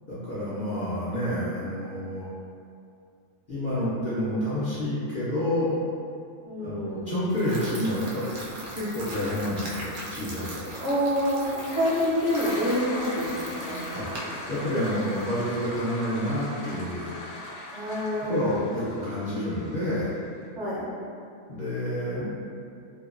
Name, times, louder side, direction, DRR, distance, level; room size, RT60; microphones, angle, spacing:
voice 1, 0.1-2.3 3.5-5.7 6.6-8.2 8.7-10.7 13.9-14.1 14.5-17.1 18.3-20.1 21.5-22.2, left 1 dB, 50° left, -11 dB, 0.6 m, -29 dB
voice 2, 6.4-7.1 10.8-11.4 11.7-14.6 17.7-18.6 20.5-20.9, equal, 75° right, -8 dB, 1.2 m, -28 dB
sound 1, 7.3-15.2, right 1 dB, 60° right, 0.6 m, -40 dB
Toilet flush, 11.5-20.3, left 1 dB, 75° left, 0.9 m, -39 dB
2.9 x 2.2 x 2.4 m, 2.4 s
omnidirectional pair, 1.3 m